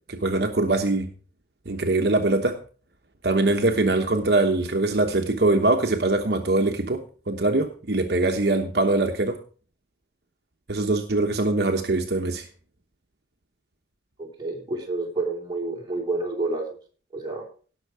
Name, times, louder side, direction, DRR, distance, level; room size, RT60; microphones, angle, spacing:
voice 1, 0.1-1.1 1.7-2.6 3.2-9.4 10.7-12.5, right 2 dB, 65° right, 1.1 m, -23 dB
voice 2, 14.2-16.7 17.1-17.5, right 2 dB, 25° right, 3.1 m, -29 dB
17.0 x 6.5 x 4.8 m
head